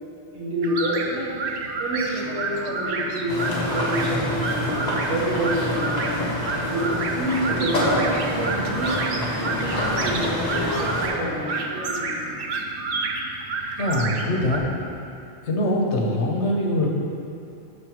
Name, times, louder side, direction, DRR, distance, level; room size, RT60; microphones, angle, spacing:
voice 1, 0.3-6.2 6.6-9.1 9.4-12.4, equal, 80° right, -8 dB, 1.6 m, -28 dB
sound 1, 0.6-14.6, right 3 dB, 60° right, 0.7 m, -30 dB
Singing, 2.2-12.3, left 4 dB, 55° left, 1.0 m, -41 dB
sound 2, 3.3-11.1, left 1 dB, 40° left, 1.3 m, -27 dB
voice 2, 13.8-14.6 15.5-16.9, left 1 dB, 80° left, -1 dB, 1.2 m, -23 dB
7.1 x 5.4 x 4.5 m, 2.7 s
omnidirectional pair, 1.1 m